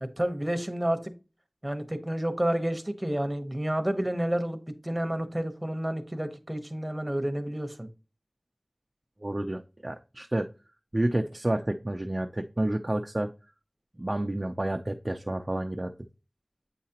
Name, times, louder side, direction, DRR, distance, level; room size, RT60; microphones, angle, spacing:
voice 1, 0.0-1.1 1.6-7.9, right 1 dB, 20° right, 1.0 m, -30 dB
voice 2, 9.2-10.5 10.9-13.3 14.0-15.9, right 1 dB, 40° right, 0.5 m, -30 dB
8.3 x 4.8 x 2.9 m
wide cardioid pair, 50°, 0 cm